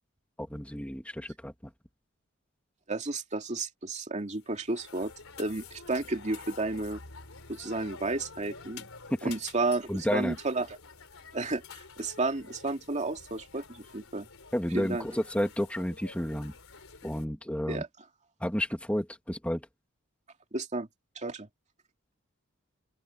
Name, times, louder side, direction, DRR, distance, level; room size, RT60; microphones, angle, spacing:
voice 1, 0.4-1.7 9.1-9.3 9.9-10.4 14.5-16.5 17.0-17.8 18.4-19.7, equal, 5° left, 2.5 m, -31 dB
voice 2, 2.9-5.1 5.4-7.0 7.5-8.9 9.2-10.7 11.3-14.3 14.7-15.0 17.7-17.9 20.5-20.9 21.2-21.5, right 2 dB, 35° right, 2.4 m, -32 dB
sound 1, 4.3-17.3, left 4 dB, 85° left, 3.5 m, -49 dB
open air
head